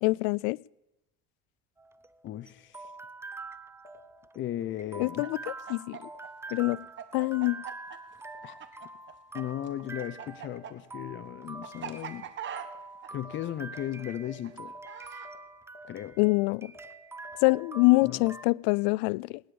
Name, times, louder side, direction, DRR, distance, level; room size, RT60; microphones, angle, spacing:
voice 1, 0.0-0.6 5.0-5.4 5.7-6.0 6.5-6.9 7.1-7.6 16.2-16.7 17.4-19.4, left 26 dB, 90° left, 0.5 m, -25 dB
sound 1, 1.8-18.5, right 3 dB, 10° right, 0.6 m, -45 dB
voice 2, 2.2-2.9 4.3-5.3 8.4-8.6 9.3-12.3 13.1-14.7 15.9-16.2 18.0-18.2, left 12 dB, 40° left, 0.8 m, -36 dB
sound 2, 2.7-2.9 3.8-4.0 4.9-5.1 6.0-6.2 7.1-7.3 8.2-8.4 9.3-9.5 10.4-10.6 11.5-11.7 12.6-12.8 13.2-13.4 13.7-13.9 14.2-14.4 14.7-14.9 15.2-15.4 15.7-15.9 16.2-16.4 16.7-16.9 17.2-18.4, right 1 dB, 20° left, 3.4 m, -49 dB
Chicken rooster, 5.0-9.4 9.7-15.3, right 9 dB, 40° right, 1.6 m, -42 dB
19.5 x 10.0 x 7.1 m
cardioid pair, 130°, 30 cm